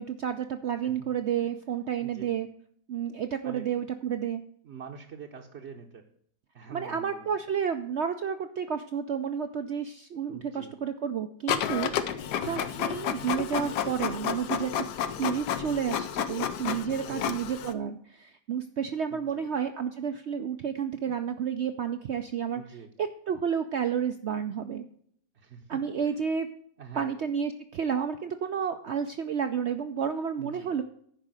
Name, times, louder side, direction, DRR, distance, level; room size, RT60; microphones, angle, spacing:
voice 1, 0.0-2.5 2.9-4.4 6.7-14.9 15.2-22.6 23.0-24.9 25.7-26.5 27.0-30.8, right 7 dB, 70° right, 8 dB, 0.6 m, -31 dB
voice 2, 2.0-2.3 3.4-3.7 4.6-6.1 6.5-7.3 10.3-10.7 12.4-12.7 16.6-17.4 19.1-19.5 22.5-22.9 25.3-26.1 26.8-27.1 30.4-30.7, right 6 dB, 50° right, 0 dB, 1.0 m, -45 dB
Printer, 11.5-17.7, left 9 dB, 80° left, 1.3 m, -31 dB
10.5 x 5.0 x 7.4 m, 0.64 s
omnidirectional pair, 1.8 m